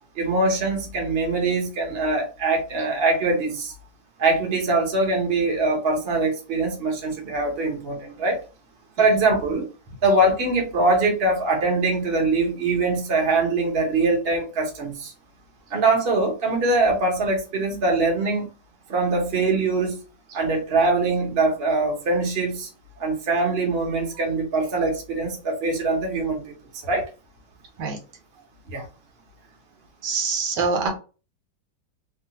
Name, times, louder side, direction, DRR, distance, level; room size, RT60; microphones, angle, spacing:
voice 1, 0.2-3.7 4.2-8.4 9.0-9.7 10.0-15.1 15.7-18.5 18.9-20.0 20.3-22.7 23.0-26.6 26.9-27.0 28.7-28.8, right 3 dB, 40° right, 0 dB, 1.1 m, -23 dB
voice 2, 30.0-30.9, right 4 dB, 85° right, 3 dB, 1.5 m, -24 dB
3.1 x 2.4 x 2.8 m, 0.33 s
omnidirectional pair, 1.8 m